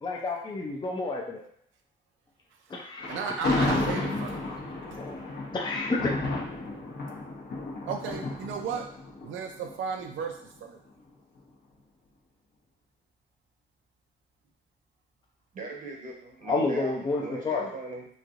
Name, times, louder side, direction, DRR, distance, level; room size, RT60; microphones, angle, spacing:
voice 1, 0.0-1.4 2.7-3.2 5.0-5.3 5.5-6.1 16.5-17.7, left 3 dB, 20° left, -1 dB, 0.5 m, -30 dB
Thunder, 3.0-10.2, left 2 dB, 55° left, 0.9 m, -32 dB
voice 2, 3.1-4.6 7.9-8.9 9.2-10.3 10.6-10.8, right 6 dB, 75° right, 4 dB, 0.5 m, -34 dB
voice 3, 15.5-16.9 17.2-18.1, right 2 dB, 40° right, 0 dB, 0.8 m, -39 dB
3.1 x 2.6 x 2.5 m, 0.63 s
cardioid pair, 90°, 20 cm